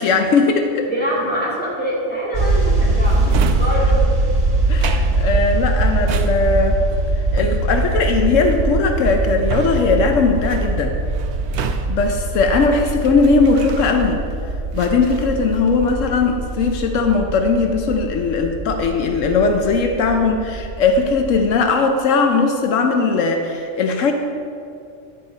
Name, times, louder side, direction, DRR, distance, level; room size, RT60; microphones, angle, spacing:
voice 1, 0.0-0.9 4.7-6.8 7.3-11.0 11.6-14.2 14.7-24.1, left 4 dB, 80° left, 5 dB, 1.0 m, -18 dB
voice 2, 0.9-4.1, equal, 5° left, -7 dB, 2.3 m, -24 dB
sound 1, 2.3-21.5, right 2 dB, 50° right, 1.8 m, -22 dB
Drawer open or close, 3.0-14.3 14.7-16.0 16.4-16.9, right 7 dB, 70° right, 0.8 m, -33 dB
12.0 x 5.9 x 4.0 m, 2.5 s
omnidirectional pair, 1.3 m